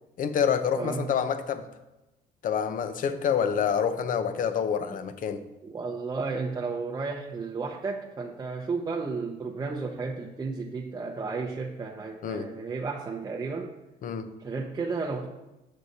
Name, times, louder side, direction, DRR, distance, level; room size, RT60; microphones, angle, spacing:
voice 1, 0.2-1.6 2.4-5.4 12.2-12.5 14.0-14.3, left 7 dB, 55° left, 10 dB, 0.7 m, -27 dB
voice 2, 0.8-1.1 4.9-5.0 5.6-13.7 14.4-15.3, right 4 dB, 20° right, -1 dB, 0.7 m, -33 dB
6.4 x 6.4 x 4.1 m, 1.0 s
cardioid pair, 110°, 17 cm